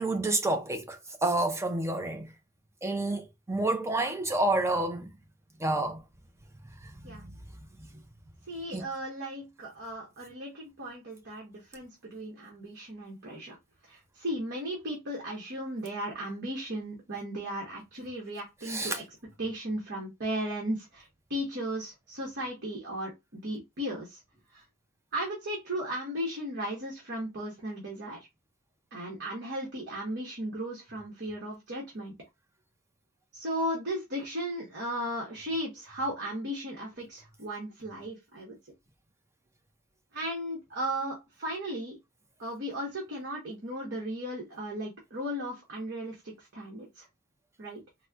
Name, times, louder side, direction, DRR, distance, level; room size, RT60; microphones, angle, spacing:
voice 1, 0.0-2.3 2.8-5.1 5.6-6.0 7.0-7.4 8.7-8.9 18.7-19.0, right 2 dB, 15° right, 0.5 m, -29 dB
voice 2, 8.5-13.6 13.9-19.0 19.4-24.2 24.5-24.6 25.1-28.3 28.9-32.1 33.3-38.6 40.1-42.0 42.4-47.1 47.6-47.8, right 1 dB, 55° right, 1.1 m, -36 dB
4.1 x 2.1 x 2.3 m
head